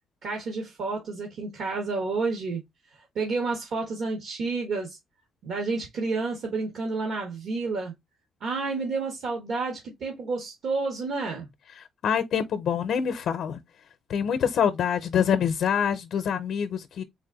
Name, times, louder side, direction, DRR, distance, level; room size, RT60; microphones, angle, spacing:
voice 1, 0.2-2.6 3.1-5.0 5.4-7.9 8.4-11.5, right 3 dB, 70° right, 1.3 m, -30 dB
voice 2, 12.0-13.6 14.1-17.0, left 8 dB, 70° left, 0.5 m, -25 dB
4.1 x 2.5 x 3.9 m
cardioid pair, 90°, 0 cm